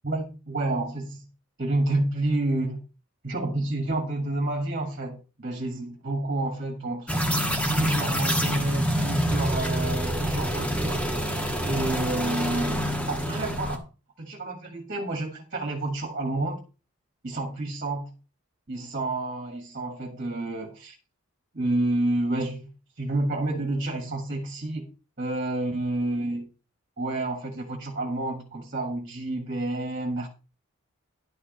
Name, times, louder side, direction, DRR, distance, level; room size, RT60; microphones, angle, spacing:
voice 1, 0.0-1.3 1.6-2.8 3.2-7.1 7.7-11.1 11.7-13.8 14.2-16.6 17.2-18.2 18.7-20.9 21.5-22.7 23.0-24.9 25.2-26.5 27.0-30.3, right 2 dB, 40° right, 2 dB, 2.0 m, -29 dB
sound 1, 7.1-13.8, equal, 5° left, 1.3 m, -27 dB
11.5 x 5.2 x 6.3 m, 0.33 s
head